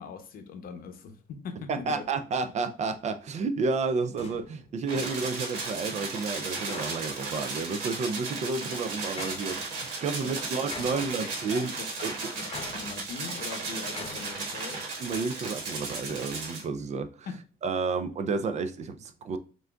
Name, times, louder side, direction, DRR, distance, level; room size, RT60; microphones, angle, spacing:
voice 1, 0.0-2.0 10.3-10.4 10.9-11.0 11.5-11.6 12.4-14.8 17.3-17.4, left 5 dB, 60° left, 0.8 m, -41 dB
voice 2, 1.7-11.7 12.0-12.1 15.0-17.3 17.6-19.4, right 4 dB, 45° right, 0.4 m, -31 dB
sound 1, 3.3-3.4 4.2-4.9 6.7-7.3 9.2-9.8 10.7-11.5 12.5-13.4 14.0-14.5, left 4 dB, 35° left, 0.8 m, -43 dB
sound 2, 4.9-16.6, right 3 dB, 80° right, 1.6 m, -35 dB
6.1 x 2.6 x 2.3 m
cardioid pair, 110°, 17 cm